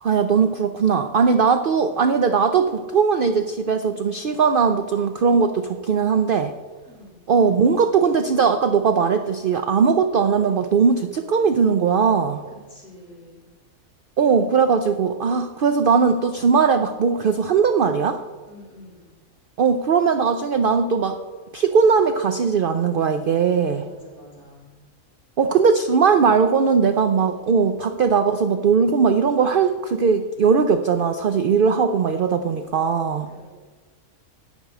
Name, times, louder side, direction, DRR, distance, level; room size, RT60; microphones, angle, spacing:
voice 1, 0.0-6.5 7.3-12.4 14.2-18.2 19.6-21.2 21.5-23.9 25.4-33.3, right 5 dB, 60° right, 8 dB, 0.6 m, -19 dB
voice 2, 6.9-7.2 12.5-13.4 18.4-19.1 23.8-24.8 33.3-33.5, left 1 dB, 35° left, -5 dB, 5.1 m, -47 dB
13.5 x 5.4 x 9.3 m, 1.4 s
omnidirectional pair, 1.5 m